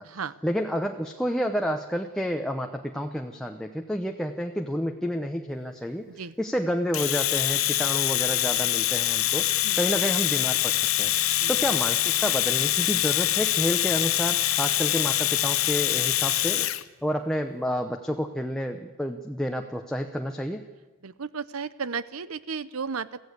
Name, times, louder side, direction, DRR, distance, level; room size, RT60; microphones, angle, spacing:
voice 1, 0.4-6.1 6.4-16.7 17.0-20.6, equal, 5° left, 3 dB, 0.9 m, -30 dB
Domestic sounds home sounds, 6.9-16.8, left 15 dB, 75° left, 0.8 m, -24 dB
voice 2, 21.0-23.1, right 5 dB, 85° right, 16 dB, 0.8 m, -34 dB
23.5 x 15.5 x 8.2 m, 1.2 s
head